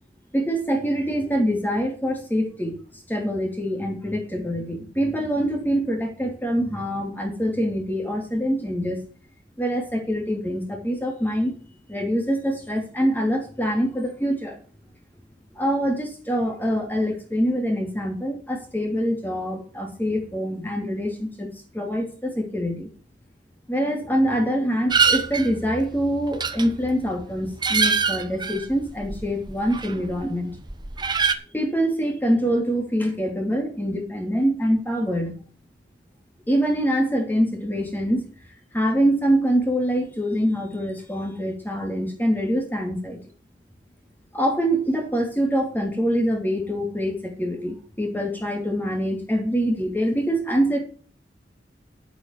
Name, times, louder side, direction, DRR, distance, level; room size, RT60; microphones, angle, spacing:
voice 1, 0.3-2.8 3.1-9.0 9.6-11.5 11.9-14.6 15.6-21.5 21.7-22.9 23.7-30.6 31.5-35.3 36.5-38.3 38.7-43.2 44.3-50.8, equal, 10° left, 2 dB, 3.1 m, -24 dB
sound 1, 24.9-30.3 30.5-31.3, right 5 dB, 25° right, 1.1 m, -25 dB
10.5 x 8.7 x 6.1 m, 0.40 s
head